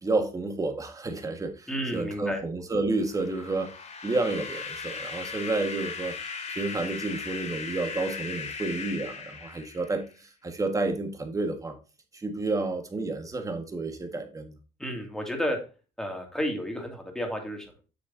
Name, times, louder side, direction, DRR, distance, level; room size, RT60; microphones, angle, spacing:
voice 1, 0.0-3.7 4.0-6.1 6.5-10.0 10.4-11.7 12.1-14.6, right 3 dB, 20° right, 6 dB, 1.6 m, -30 dB
voice 2, 1.7-2.4 14.8-15.6 16.0-17.8, equal, 5° left, 2 dB, 2.4 m, -31 dB
sound 1, 3.1-10.1, left 5 dB, 45° left, 2.4 m, -38 dB
8.2 x 6.4 x 2.7 m, 0.33 s
cardioid pair, 110°, 17 cm